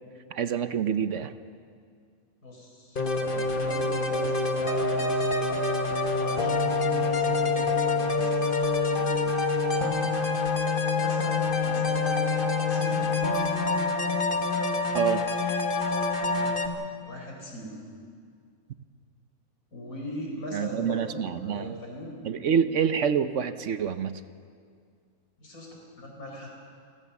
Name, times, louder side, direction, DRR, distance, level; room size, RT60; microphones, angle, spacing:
voice 1, 0.3-1.3 14.9-15.3 20.5-21.8 22.2-24.2, right 7 dB, 60° right, 11 dB, 1.0 m, -27 dB
voice 2, 2.4-5.6 6.2-10.0 11.0-12.4 12.7-13.1 16.2-16.6 17.0-17.8 19.7-22.2 25.4-26.5, left 1 dB, 75° left, 0 dB, 5.1 m, -40 dB
sound 1, 3.0-16.7, left 3 dB, 35° left, 1.6 m, -26 dB
27.5 x 15.0 x 7.0 m, 2.2 s
omnidirectional pair, 1.6 m